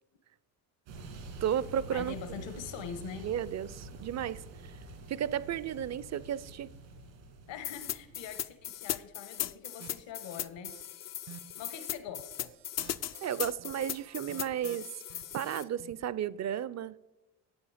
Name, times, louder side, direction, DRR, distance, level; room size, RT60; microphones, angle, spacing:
sound 1, 0.9-8.7, right 3 dB, 90° right, 2.6 m, -47 dB
voice 1, 1.4-2.2 3.2-4.7 5.1-6.7 13.2-14.9 15.3-16.9, right 9 dB, 35° right, 0.5 m, -33 dB
voice 2, 1.9-3.3 7.5-10.8 11.6-12.5, left 7 dB, 65° left, 1.3 m, -43 dB
sound 2, 7.6-15.6, left 11 dB, 35° left, 0.4 m, -38 dB
sound 3, 9.8-10.8 11.2-16.1, right 10 dB, 60° right, 0.8 m, -53 dB
11.5 x 8.4 x 5.0 m
supercardioid pair, 65°, 47 cm